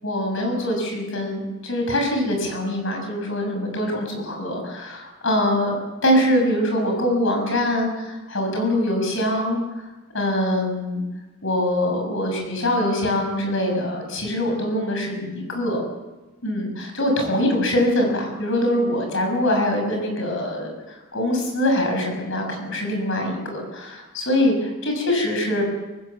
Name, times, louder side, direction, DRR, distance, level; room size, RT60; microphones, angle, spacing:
voice 1, 0.0-5.7 6.0-9.6 10.1-11.0 11.4-15.8 16.4-25.6, left 1 dB, 65° left, 2 dB, 6.5 m, -23 dB
24.5 x 15.0 x 7.1 m, 1.1 s
head